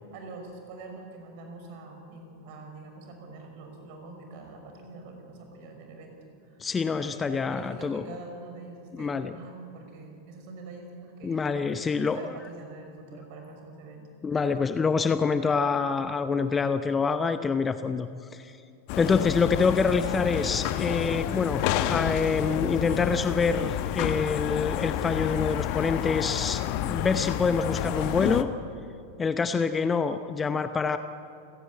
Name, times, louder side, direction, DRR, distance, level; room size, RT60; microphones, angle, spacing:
voice 1, 0.0-6.7 7.0-14.1 26.9-27.2 27.7-28.2, right 3 dB, 45° right, 4 dB, 5.7 m, -45 dB
voice 2, 6.6-8.2 8.9-9.3 11.2-12.3 14.2-18.6 19.0-28.5 29.2-31.0, left 5 dB, 15° left, 10 dB, 0.8 m, -26 dB
sound 1, 18.9-28.4, left 12 dB, 45° left, 1.1 m, -29 dB
29.0 x 16.5 x 8.7 m, 2.6 s
figure-of-eight pair, 90°, 0 cm